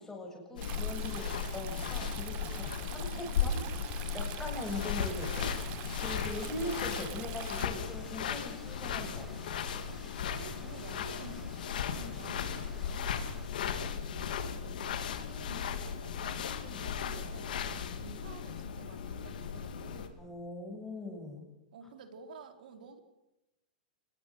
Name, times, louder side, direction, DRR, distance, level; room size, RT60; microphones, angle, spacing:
voice 1, 0.0-5.5 6.0-9.8 16.6-16.9 20.2-21.5, left 1 dB, 10° left, 0 dB, 7.2 m, -41 dB
sound 1, 0.6-20.1, left 7 dB, 80° left, 3.2 m, -36 dB
Stream, 0.6-7.7, right 19 dB, 35° right, 0.7 m, -46 dB
sound 2, 3.8-13.5, right 1 dB, 5° right, 4.2 m, -54 dB
voice 2, 10.3-16.4 16.8-20.2 21.7-23.0, right 5 dB, 75° right, 7 dB, 3.9 m, -51 dB
24.0 x 21.0 x 6.4 m, 0.94 s
hypercardioid pair, 145°, 5 cm